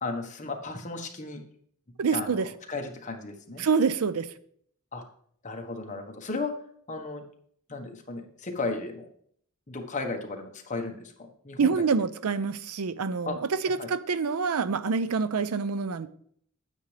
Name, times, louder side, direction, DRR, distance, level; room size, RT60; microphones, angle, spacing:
voice 1, 0.0-1.4 2.1-3.7 4.9-5.0 5.4-6.5 6.9-7.2 7.7-9.1 9.7-11.8 13.2-13.4 13.8-13.9, left 3 dB, 35° left, 1.2 m, -35 dB
voice 2, 2.0-2.5 3.6-4.3 11.6-13.4 13.6-16.1, right 5 dB, 80° right, 0.5 m, -26 dB
9.3 x 8.4 x 3.3 m
head